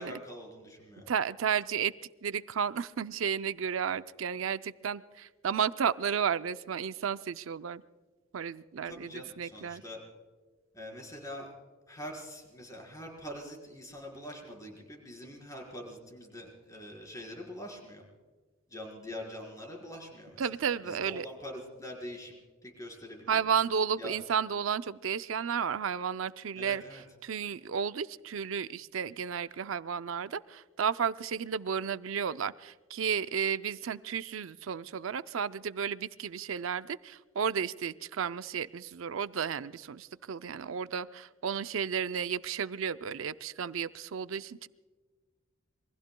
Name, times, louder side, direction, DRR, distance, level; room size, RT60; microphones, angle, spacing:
voice 1, 0.0-1.1 8.8-10.0 10.7-11.5 11.9-18.0 18.7-23.4 24.0-24.1 26.6-27.0, equal, 15° left, 0 dB, 4.2 m, -44 dB
voice 2, 1.1-1.9 2.2-7.8 8.3-9.8 20.4-21.3 23.3-44.7, right 7 dB, 75° right, 13 dB, 0.5 m, -33 dB
27.5 x 23.5 x 2.2 m, 1.4 s
head